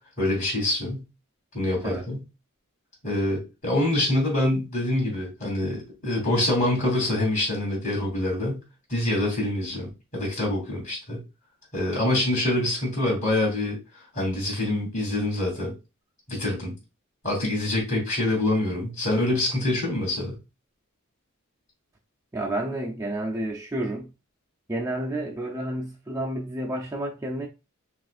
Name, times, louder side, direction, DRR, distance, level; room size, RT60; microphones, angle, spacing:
voice 1, 0.2-1.1 1.5-2.2 3.0-8.6 8.9-11.2 11.7-13.8 14.1-15.7 16.3-16.7 17.2-20.4, left 1 dB, 35° left, 2.6 m, -25 dB
voice 2, 22.3-24.1 24.7-27.5, right 1 dB, 15° right, 0.4 m, -30 dB
6.0 x 2.5 x 2.4 m
head